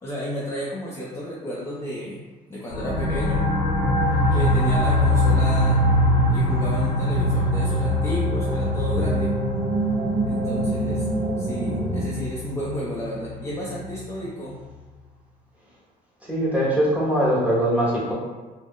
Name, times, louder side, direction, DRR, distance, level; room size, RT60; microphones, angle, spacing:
voice 1, 0.0-2.2 2.5-3.5 4.3-5.9 6.3-9.3 10.3-11.1 11.4-14.6, equal, 15° left, -6 dB, 0.4 m, -32 dB
sound 1, 2.7-14.0, left 1 dB, 80° left, 0.7 m, -23 dB
sound 2, 6.1-12.0, right 2 dB, 40° right, 0.5 m, -28 dB
voice 2, 16.2-18.1, equal, 10° right, -7 dB, 0.9 m, -21 dB
2.3 x 2.0 x 3.5 m, 1.3 s
cardioid pair, 110°, 17 cm